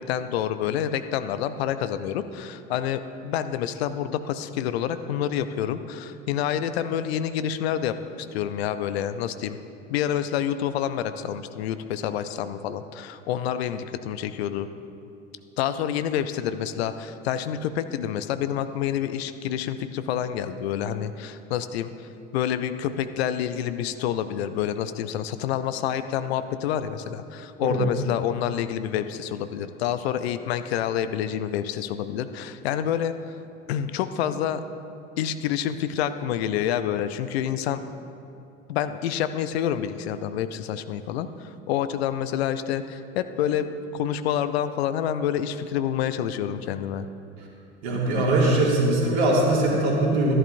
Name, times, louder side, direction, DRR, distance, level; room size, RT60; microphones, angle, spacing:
voice 1, 0.0-9.6 9.9-14.7 15.6-33.1 33.7-34.6 35.2-37.8 38.7-47.1, left 10 dB, 60° left, 11 dB, 0.6 m, -28 dB
voice 2, 47.8-50.3, right 2 dB, 60° right, -3 dB, 2.3 m, -21 dB
13.5 x 11.0 x 2.6 m, 2.6 s
figure-of-eight pair, 70°, 36 cm